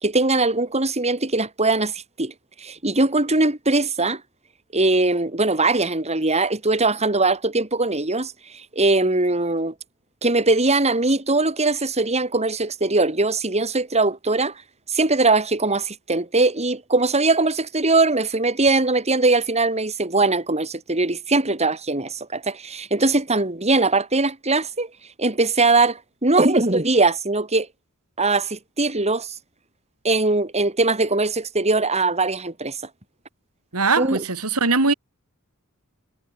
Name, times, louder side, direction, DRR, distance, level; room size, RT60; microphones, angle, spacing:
voice 1, 0.0-4.2 4.7-9.7 10.2-14.5 14.9-24.9 25.2-27.7 28.2-29.3 30.0-32.8 34.0-34.2, right 3 dB, 30° right, 4.2 m, -21 dB
voice 2, 33.7-34.9, right 3 dB, 85° right, 3.2 m, -20 dB
head